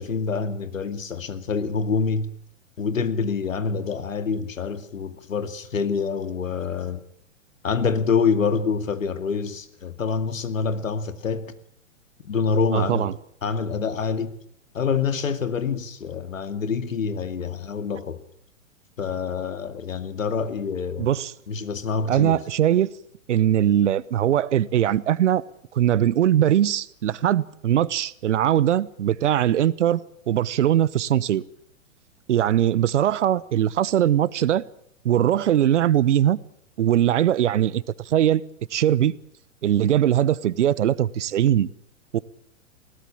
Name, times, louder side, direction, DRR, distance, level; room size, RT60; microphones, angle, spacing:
voice 1, 0.0-2.3 2.8-7.0 7.6-11.5 12.2-13.1 13.4-14.3 14.7-18.2 19.0-21.1 21.5-22.4, left 5 dB, 75° left, 2.4 m, -26 dB
voice 2, 12.7-13.1 21.0-21.3 22.1-22.9 23.3-25.4 25.7-31.4 32.3-34.6 35.0-36.4 36.8-38.4 38.7-39.1 39.6-41.7 42.1-42.2, right 11 dB, 60° right, 1.0 m, -21 dB
21.0 x 17.5 x 8.7 m
figure-of-eight pair, 110°, 40 cm